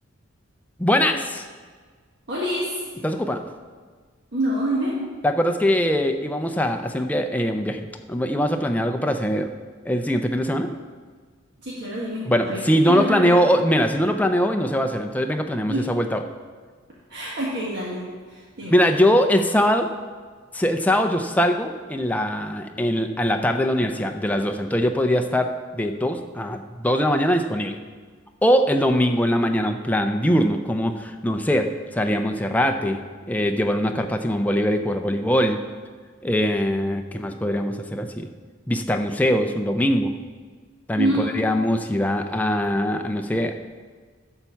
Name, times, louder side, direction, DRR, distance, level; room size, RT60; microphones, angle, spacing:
voice 1, 0.8-1.4 3.0-3.4 5.2-9.5 9.9-10.7 12.2-16.2 18.7-19.9 20.5-27.8 28.4-31.7 31.9-33.0 33.3-35.6 36.2-38.3 38.7-40.1 40.9-43.5, equal, 5° left, 5 dB, 0.5 m, -22 dB
voice 2, 2.3-2.7 4.3-4.9 11.6-13.3 15.7-15.8 17.1-18.0 18.3-18.8 41.0-41.3, right 1 dB, 50° right, -6 dB, 1.6 m, -26 dB
11.5 x 4.5 x 7.1 m, 1.5 s
head